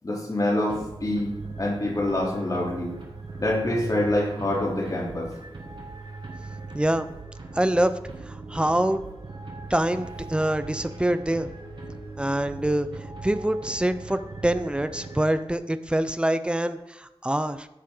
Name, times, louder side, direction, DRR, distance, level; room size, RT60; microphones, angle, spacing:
voice 1, 0.0-2.9 3.4-5.3, left 1 dB, 40° left, -3 dB, 3.3 m, -26 dB
sound 1, 0.7-15.7, right 3 dB, 55° right, 2.1 m, -39 dB
voice 2, 6.7-7.1 7.5-7.9 8.3-9.0 9.7-11.5 12.2-12.9 13.2-17.7, right 1 dB, 10° right, 11 dB, 0.7 m, -25 dB
13.0 x 7.2 x 3.9 m, 0.97 s
wide cardioid pair, 90°, 10 cm